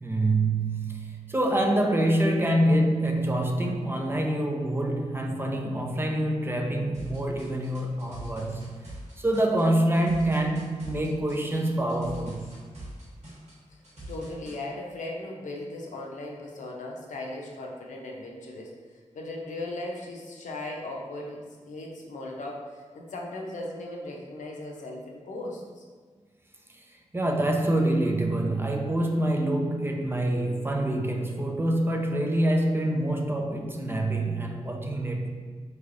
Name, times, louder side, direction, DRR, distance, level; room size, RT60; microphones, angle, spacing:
voice 1, 0.0-8.6 9.2-12.4 27.1-35.3, right 1 dB, 20° right, 2 dB, 0.4 m, -26 dB
sound 1, 6.9-14.6, right 1 dB, 65° right, 1.3 m, -43 dB
voice 2, 14.1-18.7 19.1-25.8, left 2 dB, 90° left, -1 dB, 0.6 m, -37 dB
4.5 x 3.2 x 2.5 m, 1.5 s
wide cardioid pair, 130°, 12 cm